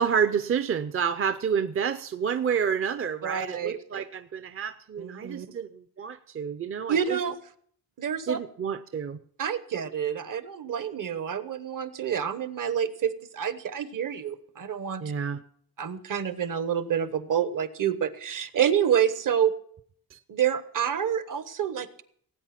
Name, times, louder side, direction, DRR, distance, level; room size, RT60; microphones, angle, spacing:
voice 1, 0.0-7.2 8.3-9.2 15.0-15.4 20.1-20.2, right 7 dB, 35° right, 11 dB, 0.6 m, -29 dB
voice 2, 3.2-4.0 5.0-5.5 6.9-7.4 8.0-8.4 9.4-15.0 15.8-19.5 20.3-22.0, right 8 dB, 60° right, 13 dB, 1.0 m, -28 dB
18.0 x 9.0 x 5.8 m, 0.63 s
wide cardioid pair, 145°, 36 cm